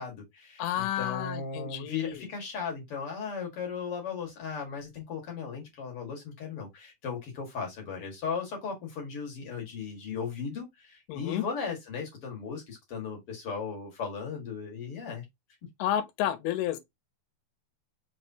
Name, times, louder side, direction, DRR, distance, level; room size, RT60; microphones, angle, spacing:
voice 1, 0.0-15.2, left 6 dB, 50° left, 1.8 m, -37 dB
voice 2, 0.6-2.2 11.1-11.4 15.8-16.8, left 11 dB, 80° left, 2.7 m, -31 dB
5.9 x 3.2 x 2.7 m
omnidirectional pair, 4.5 m